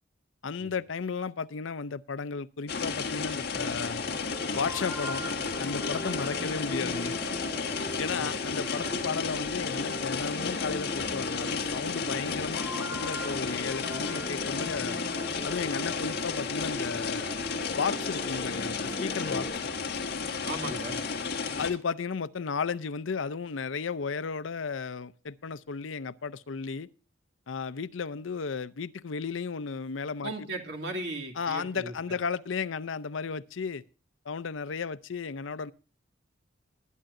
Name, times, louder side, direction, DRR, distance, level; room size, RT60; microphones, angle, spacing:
voice 1, 0.4-4.0 4.5-5.2 5.6-7.3 8.0-15.0 15.4-17.3 17.8-19.7 21.6-26.9 27.5-30.3 31.4-33.8 34.3-35.7, left 5 dB, 80° left, 0.6 m, -34 dB
sound 1, 2.7-21.7, left 5 dB, 50° left, 1.7 m, -33 dB
sound 2, 3.5-19.5, equal, 5° right, 4.3 m, -39 dB
voice 2, 20.4-21.0 30.2-31.9, right 2 dB, 55° right, 2.6 m, -37 dB
20.5 x 10.0 x 2.6 m
head